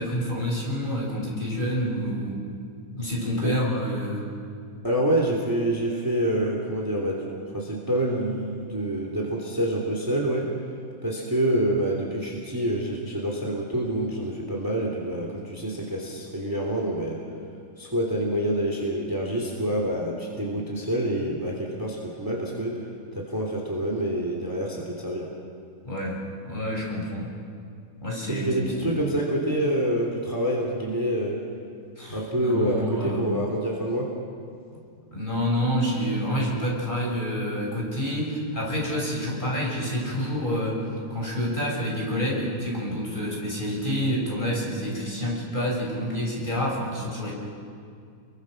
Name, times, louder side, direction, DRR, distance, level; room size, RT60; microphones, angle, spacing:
voice 1, 0.0-2.4 2.9-4.3 25.8-26.2 26.4-27.3 28.0-29.0 32.0-33.3 35.1-47.3, equal, 30° left, -3 dB, 6.1 m, -28 dB
voice 2, 4.8-7.2 7.5-10.5 11.0-17.2 17.8-22.8 23.1-25.3 28.3-31.4 32.1-34.1, right 1 dB, 10° right, -2 dB, 2.9 m, -27 dB
29.5 x 22.5 x 6.4 m, 2.3 s
omnidirectional pair, 1.7 m